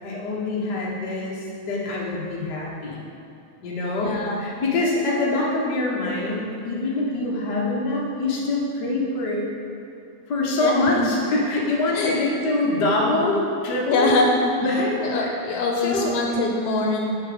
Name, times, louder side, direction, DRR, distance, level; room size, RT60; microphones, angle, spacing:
voice 1, 0.0-3.0 3.6-9.4 10.3-14.2 14.6-16.1, left 2 dB, 45° left, -4 dB, 1.5 m, -25 dB
voice 2, 4.0-4.4 10.6-11.1 11.9-12.1 13.9-14.3 15.0-17.2, left 2 dB, 80° left, 0 dB, 2.0 m, -23 dB
11.0 x 4.6 x 5.2 m, 2.5 s
omnidirectional pair, 3.4 m